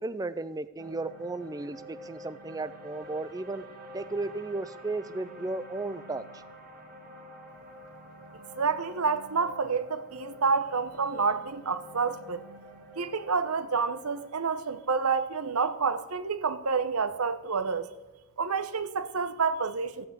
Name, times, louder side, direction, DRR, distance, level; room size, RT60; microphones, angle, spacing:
voice 1, 0.0-3.6 3.9-6.4, right 2 dB, 15° right, 0.4 m, -35 dB
sound 1, 0.8-17.0, left 1 dB, 40° right, 2.3 m, -48 dB
voice 2, 8.6-12.4 13.0-17.9 18.4-20.0, right 5 dB, 85° right, 1.0 m, -29 dB
15.0 x 8.5 x 8.1 m
head